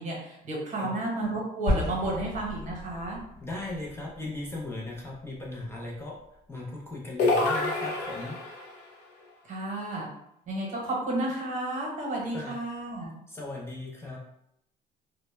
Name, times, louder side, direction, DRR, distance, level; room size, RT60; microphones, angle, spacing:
voice 1, 0.0-3.2 9.5-10.1 10.5-13.2, right 1 dB, 50° right, -2 dB, 0.9 m, -32 dB
sound 1, 1.7-6.0, left 1 dB, 50° left, 0.9 m, -35 dB
voice 2, 3.4-6.2 6.5-8.4 12.3-12.6 13.3-14.2, left 2 dB, 15° left, -3 dB, 0.5 m, -37 dB
sound 2, 7.2-8.7, left 2 dB, 80° left, 0.6 m, -27 dB
2.1 x 2.0 x 3.1 m, 0.76 s
cardioid pair, 110°, 17 cm